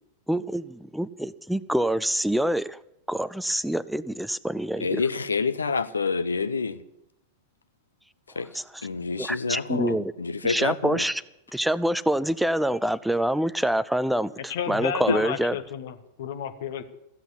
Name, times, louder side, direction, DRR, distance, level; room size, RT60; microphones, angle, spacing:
voice 1, 0.3-2.8 3.1-5.0 8.5-8.6 9.2-10.1 10.4-11.2 11.5-15.6, right 1 dB, ahead, 0.4 m, -26 dB
voice 2, 4.8-6.8 8.4-8.5 8.8-11.0 15.1-15.2, left 4 dB, 75° left, 0.7 m, -27 dB
voice 3, 14.5-16.8, left 8 dB, 55° left, 1.3 m, -32 dB
15.0 x 8.0 x 9.8 m
figure-of-eight pair, 90°, 0 cm